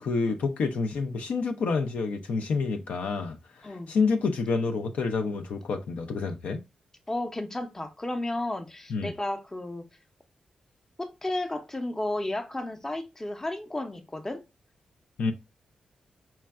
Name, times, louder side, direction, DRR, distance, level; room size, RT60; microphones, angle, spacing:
voice 1, 0.0-6.6 8.9-9.1 15.2-15.3, left 4 dB, 80° left, 0.4 m, -28 dB
voice 2, 7.1-9.9 11.0-14.4, left 1 dB, 20° left, 0.6 m, -33 dB
4.2 x 2.3 x 2.2 m
cardioid pair, 65°, 2 cm